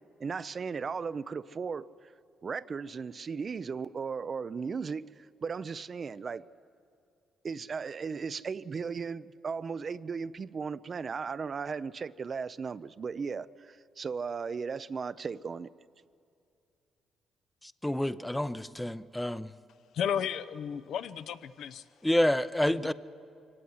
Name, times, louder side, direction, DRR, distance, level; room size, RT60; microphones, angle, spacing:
voice 1, 0.2-1.9 2.4-6.4 7.4-15.7, right 5 dB, 40° right, 15 dB, 0.5 m, -36 dB
voice 2, 17.6-19.5 22.0-22.9, left 1 dB, 5° left, 15 dB, 0.6 m, -28 dB
voice 3, 19.9-21.8 22.8-22.9, left 8 dB, 75° left, 12 dB, 0.7 m, -33 dB
23.5 x 17.0 x 9.6 m, 2.6 s
cardioid pair, 90°, 0 cm